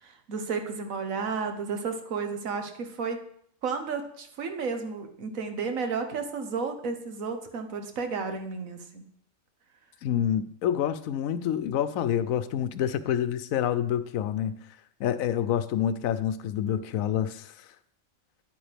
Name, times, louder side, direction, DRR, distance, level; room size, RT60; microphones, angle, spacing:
voice 1, 0.0-3.2 3.6-9.0, right 5 dB, 80° right, 1.5 m, -32 dB
voice 2, 10.0-14.5 15.0-17.5, left 10 dB, 85° left, 1.0 m, -27 dB
10.0 x 8.8 x 3.4 m
omnidirectional pair, 1.4 m